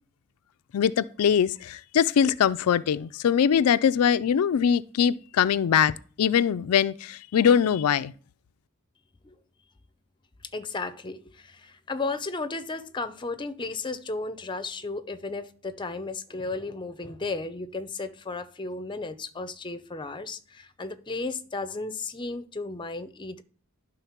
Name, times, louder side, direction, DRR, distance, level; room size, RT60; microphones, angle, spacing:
voice 1, 0.7-5.9 6.2-8.1, left 8 dB, 80° left, 0.4 m, -22 dB
voice 2, 10.5-23.4, left 3 dB, 20° left, 0.6 m, -34 dB
11.5 x 3.8 x 5.8 m
head